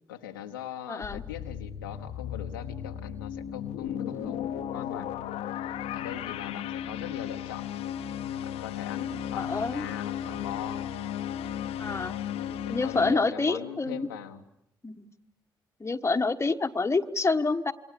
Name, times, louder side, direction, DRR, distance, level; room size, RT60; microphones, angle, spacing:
voice 1, 0.1-5.1 5.9-7.7 8.4-10.8 12.3-14.4, left 10 dB, 85° left, 4 dB, 1.1 m, -41 dB
voice 2, 0.9-1.2 4.1-4.3 9.4-9.9 11.8-12.2 12.7-14.1 14.8-15.1 15.8-17.7, left 3 dB, 25° left, 6 dB, 1.4 m, -28 dB
sound 1, 1.0-13.1, left 10 dB, 70° left, 1.0 m, -35 dB
28.0 x 23.0 x 8.4 m, 0.77 s
hypercardioid pair, 40°, 11 cm